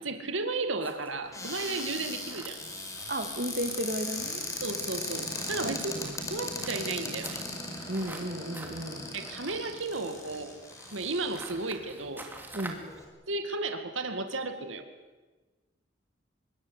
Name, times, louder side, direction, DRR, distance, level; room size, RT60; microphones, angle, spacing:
voice 1, 0.0-2.6 4.6-5.9 6.3-7.4 9.1-10.6 10.9-12.3 13.3-14.8, right 3 dB, 85° right, 8 dB, 2.1 m, -34 dB
sound 1, 0.8-12.9, right 2 dB, 10° right, 2.9 m, -48 dB
Cupboard open or close, 1.3-11.7 12.3-12.4 12.7-13.0, left 2 dB, 15° left, 5.0 m, -38 dB
voice 2, 3.1-4.4 5.6-6.1 7.9-9.0 12.5-12.8, right 1 dB, 50° right, 7 dB, 2.4 m, -34 dB
25.5 x 21.5 x 8.3 m, 1.3 s
head